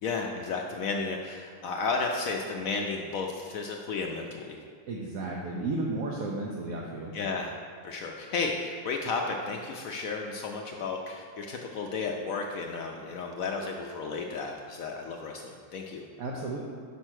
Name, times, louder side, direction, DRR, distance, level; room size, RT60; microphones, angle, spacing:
voice 1, 0.0-4.6 7.1-7.5 7.8-16.0, left 4 dB, 80° left, 1 dB, 0.7 m, -33 dB
voice 2, 4.9-7.2 16.2-16.6, right 2 dB, 65° right, -2 dB, 0.9 m, -33 dB
5.8 x 4.4 x 6.2 m, 2.1 s
omnidirectional pair, 2.0 m